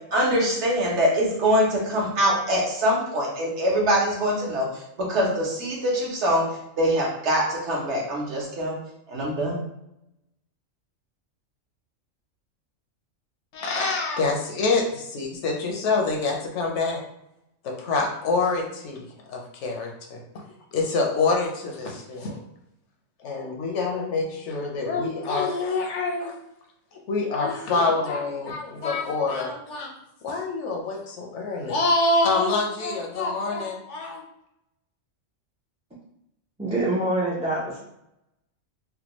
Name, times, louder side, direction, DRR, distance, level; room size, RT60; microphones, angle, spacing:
voice 1, 0.1-6.4 6.8-8.7 9.1-9.6, equal, 65° right, -3 dB, 1.2 m, -23 dB
voice 2, 13.5-17.0 17.6-20.2 20.7-22.4 23.2-26.3 26.9-29.9 30.2-34.2, left 3 dB, 70° left, 1 dB, 0.9 m, -26 dB
voice 3, 36.6-37.8, right 2 dB, 10° right, -6 dB, 0.3 m, -25 dB
3.4 x 2.2 x 2.9 m, 0.81 s
omnidirectional pair, 1.3 m